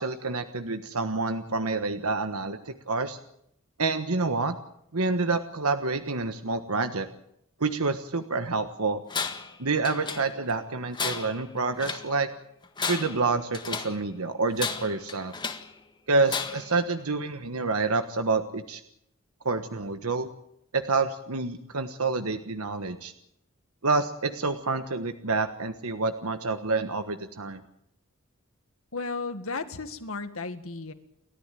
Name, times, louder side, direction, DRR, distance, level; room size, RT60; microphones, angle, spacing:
voice 1, 0.0-3.2 3.8-4.5 4.9-7.1 7.6-9.0 9.6-12.3 12.9-15.3 16.1-18.8 19.4-20.3 20.7-23.1 23.8-27.6, right 3 dB, 90° right, 8 dB, 1.4 m, -28 dB
Tools, 9.1-9.6 9.9-10.6 10.9-12.1 12.6-14.0 14.6-15.7 16.3-16.8, left 5 dB, 20° left, 1.6 m, -33 dB
voice 2, 28.9-30.9, left 3 dB, 75° left, 9 dB, 1.9 m, -34 dB
29.5 x 13.5 x 9.1 m, 0.75 s
head